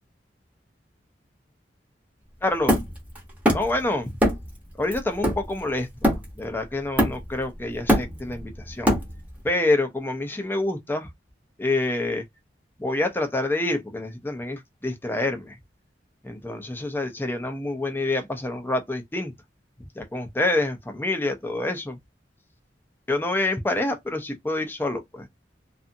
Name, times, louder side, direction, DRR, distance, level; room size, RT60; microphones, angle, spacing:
voice 1, 2.4-2.8 3.5-4.2 4.8-8.9 9.4-11.1 11.6-12.2 12.8-15.5 16.2-19.3 20.0-22.0 23.1-25.3, left 2 dB, 10° left, 0.5 m, -27 dB
Hammer, 2.7-3.8 4.2-4.5 4.9-6.5 7.0-7.4 7.7-9.4, equal, 10° right, 0.8 m, -23 dB
2.6 x 2.5 x 2.5 m
head